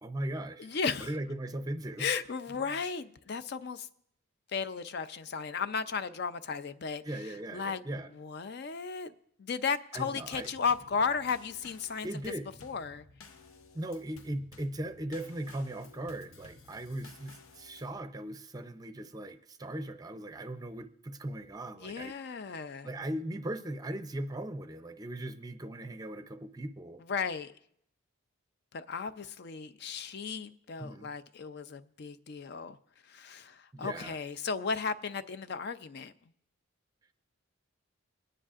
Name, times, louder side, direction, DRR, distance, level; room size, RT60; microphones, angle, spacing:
voice 1, 0.0-0.7 1.0-2.1 7.0-8.1 9.9-10.5 12.0-12.5 13.7-22.1 22.8-27.0 30.8-31.1 33.7-34.2, right 1 dB, 20° right, 0.5 m, -38 dB
voice 2, 0.6-1.1 2.0-3.9 4.5-7.0 7.5-7.8 8.1-9.1 9.4-12.1 12.6-13.0 21.8-22.9 27.1-27.5 28.7-32.8 33.0-36.1, left 5 dB, 55° left, 0.4 m, -35 dB
Drum kit / Snare drum / Bass drum, 10.3-18.0, left 3 dB, 80° left, 0.8 m, -55 dB
24.0 x 10.0 x 2.4 m
head